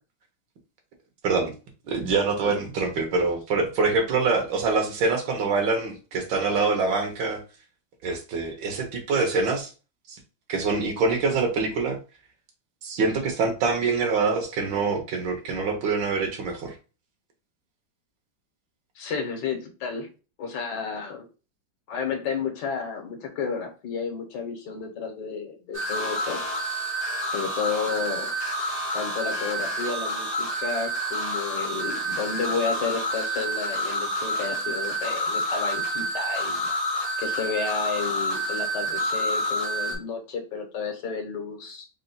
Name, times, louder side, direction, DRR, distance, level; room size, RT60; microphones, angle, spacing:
voice 1, 1.9-7.4 8.0-9.7 10.1-10.2 10.5-12.0 12.8-16.8, right 4 dB, 85° right, 3 dB, 1.7 m, -25 dB
voice 2, 19.0-20.1 20.4-21.2 21.9-26.4 27.3-28.3 28.9-36.7 37.2-41.9, left 5 dB, 70° left, 4 dB, 1.6 m, -32 dB
sound 1, 25.7-40.0, right 1 dB, 30° left, 2.4 m, -28 dB
4.2 x 3.9 x 2.2 m, 0.33 s
omnidirectional pair, 2.0 m